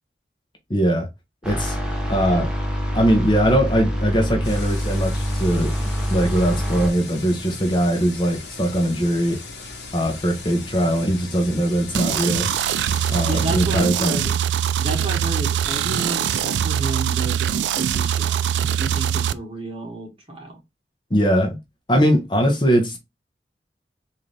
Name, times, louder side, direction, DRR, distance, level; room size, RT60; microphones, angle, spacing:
voice 1, 0.7-1.1 1.4-1.8 2.1-2.5 2.9-5.8 6.1-9.4 9.9-12.5 13.1-14.3 21.1-21.6 21.9-23.0, equal, 25° left, 0.8 m, -21 dB
sound 1, 1.4-6.9, equal, 5° right, 0.8 m, -25 dB
sound 2, 4.4-13.6, left 3 dB, 75° left, 1.1 m, -38 dB
sound 3, 11.9-19.3, right 9 dB, 85° right, 0.3 m, -23 dB
voice 2, 13.1-14.4 14.8-20.6, right 2 dB, 30° right, 1.3 m, -31 dB
3.8 x 2.7 x 3.2 m
head